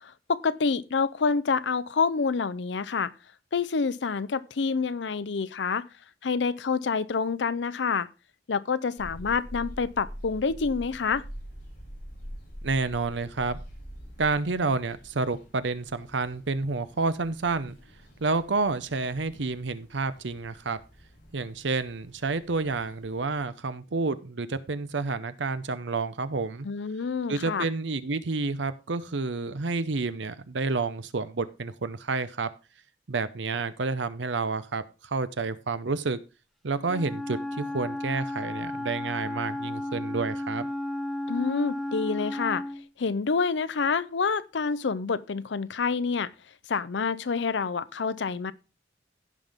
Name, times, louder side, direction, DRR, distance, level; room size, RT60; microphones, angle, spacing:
voice 1, 0.0-3.1 3.5-5.9 6.2-8.1 8.5-11.2 26.6-27.7 41.3-42.6 43.0-46.3 46.7-48.5, left 5 dB, 75° left, 0.6 m, -27 dB
sound 1, 9.0-23.4, equal, 55° left, 5.3 m, -46 dB
voice 2, 12.6-13.6 14.2-17.8 18.2-20.8 21.3-26.7 27.3-32.5 33.1-36.2 36.6-40.7, right 3 dB, 80° right, 0.7 m, -29 dB
Wind instrument woodwind instrument, 36.8-42.9, left 1 dB, ahead, 0.6 m, -33 dB
16.0 x 5.7 x 3.5 m
head